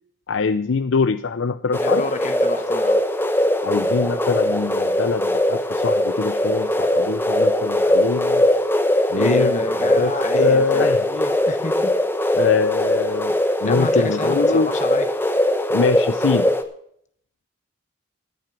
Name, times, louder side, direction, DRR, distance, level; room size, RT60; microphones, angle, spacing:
voice 1, 0.3-2.0 3.6-8.5 9.1-11.0 12.3-13.3 13.6-14.7 15.7-16.5, left 4 dB, 65° left, 13 dB, 0.5 m, -23 dB
sound 1, 1.7-16.6, left 1 dB, 10° left, 0.9 m, -20 dB
voice 2, 1.8-3.0 9.1-11.9 13.6-15.1, left 2 dB, 35° left, 8 dB, 1.1 m, -30 dB
14.0 x 7.6 x 6.1 m, 0.65 s
head